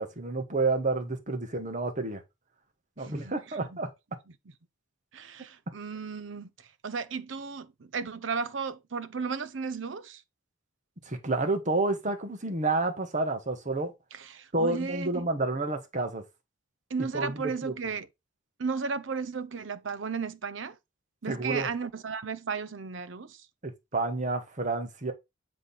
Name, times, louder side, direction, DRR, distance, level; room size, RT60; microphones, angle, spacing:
voice 1, 0.0-2.2 3.0-3.9 11.0-13.9 14.5-16.2 17.1-17.7 21.3-21.7 23.6-25.1, right 2 dB, 40° right, 1.3 m, -29 dB
voice 2, 3.0-3.8 5.1-6.5 6.8-10.2 14.1-15.3 16.9-18.1 18.6-20.8 21.2-23.4, right 5 dB, 70° right, 0.6 m, -34 dB
7.5 x 3.3 x 4.1 m
head